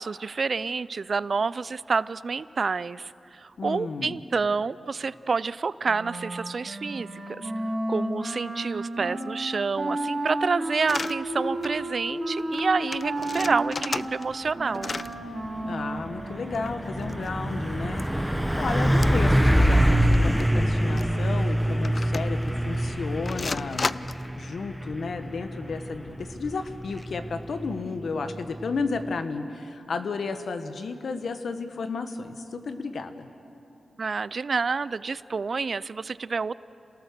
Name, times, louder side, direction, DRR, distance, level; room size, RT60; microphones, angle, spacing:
voice 1, 0.0-7.5 7.9-14.9 34.0-36.5, right 4 dB, 55° right, 18 dB, 0.4 m, -28 dB
voice 2, 3.6-4.2 15.6-24.0 24.4-33.3, left 4 dB, 70° left, 8 dB, 1.3 m, -33 dB
Wind instrument woodwind instrument, 5.8-17.9, right 1 dB, 35° right, 3.6 m, -33 dB
sound 1, 10.8-11.1 11.6-11.8 12.1-12.2 12.4-12.6 12.9-14.5 14.7-15.1 16.5-17.5 18.0-18.1 18.9-19.3 19.6-19.7 20.1-20.4 21.0-21.1 21.8-22.5 23.3-24.3, left 3 dB, 45° left, 0.4 m, -33 dB
Truck, 14.9-29.2, equal, ahead, 0.8 m, -26 dB
28.0 x 18.0 x 6.7 m, 2.9 s
cardioid pair, 75°, 0 cm